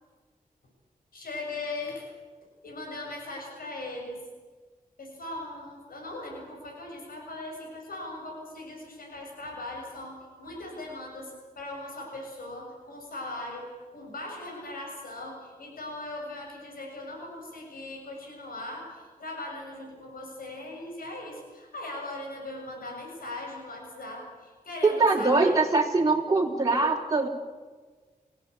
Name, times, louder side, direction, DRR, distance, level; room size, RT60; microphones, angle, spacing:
voice 1, 1.1-2.1 2.6-4.2 5.0-25.6, left 2 dB, 85° left, 1 dB, 7.4 m, -39 dB
voice 2, 24.8-27.3, right 3 dB, 25° right, -1 dB, 3.5 m, -23 dB
29.5 x 16.0 x 8.5 m, 1.4 s
wide cardioid pair, 85°, 15 cm